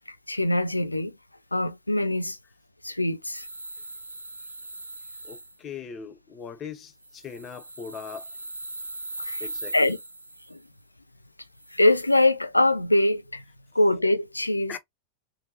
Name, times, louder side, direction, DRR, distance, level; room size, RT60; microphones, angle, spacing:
voice 1, 0.1-1.1 1.5-2.4 2.8-3.5 9.2-10.0 10.5-10.6 11.7-13.4 13.7-14.8, left 1 dB, 85° left, 0.3 m, -23 dB
sound 1, 3.3-5.5 7.0-10.6 11.6-12.2, right 2 dB, 85° right, 0.5 m, -40 dB
voice 2, 5.2-8.3 9.4-9.9 14.7-14.8, left 6 dB, 25° left, 0.5 m, -40 dB
3.4 x 2.6 x 2.7 m
figure-of-eight pair, 90°, 0 cm